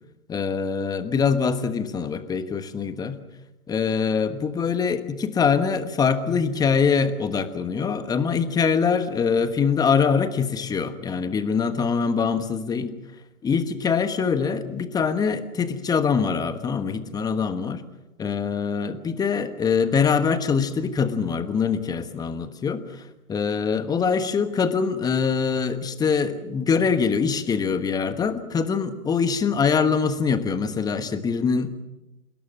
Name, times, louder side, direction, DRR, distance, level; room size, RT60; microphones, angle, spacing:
voice 1, 0.3-3.2 3.7-12.9 13.4-17.8 18.2-31.7, left 6 dB, 10° left, 11 dB, 1.3 m, -23 dB
29.0 x 17.5 x 7.5 m, 0.99 s
figure-of-eight pair, 125°, 44 cm